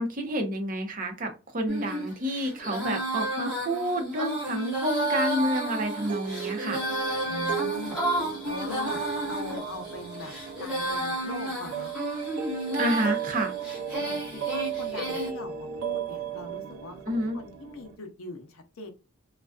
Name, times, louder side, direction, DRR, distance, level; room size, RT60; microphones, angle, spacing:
voice 1, 0.0-6.8 12.8-13.5 17.1-17.4, equal, 40° right, 4 dB, 0.7 m, -29 dB
Female singing, 1.7-15.3, right 1 dB, 5° right, 1.1 m, -32 dB
sound 1, 5.4-18.0, right 8 dB, 90° right, 0.6 m, -36 dB
voice 2, 7.3-8.0 8.4-10.3 10.6-11.9 14.0-18.9, left 2 dB, 75° left, 4 dB, 0.6 m, -41 dB
2.4 x 2.2 x 2.3 m, 0.30 s
head